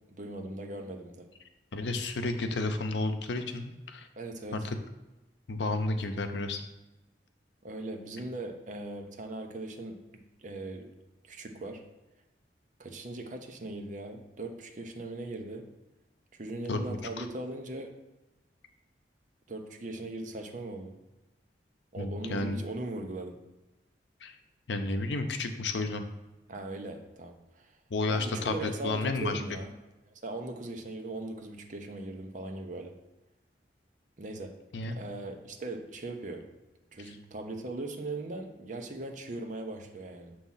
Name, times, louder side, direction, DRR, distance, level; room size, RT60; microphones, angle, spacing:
voice 1, 0.1-1.3 4.2-4.7 7.6-10.9 11.2-11.8 12.8-15.7 16.3-17.9 19.5-20.9 21.9-23.4 26.5-27.7 28.1-29.7 30.2-33.0 34.2-36.4 36.9-40.4, right 2 dB, 45° right, 4 dB, 0.8 m, -39 dB
voice 2, 1.7-4.1 4.5-4.8 5.5-6.6 16.7-16.8 17.2-17.3 22.0-22.6 24.2-24.3 24.7-26.0 27.9-29.4 34.7-35.0, left 2 dB, 85° left, 6 dB, 0.7 m, -31 dB
7.2 x 3.0 x 5.6 m, 1.1 s
head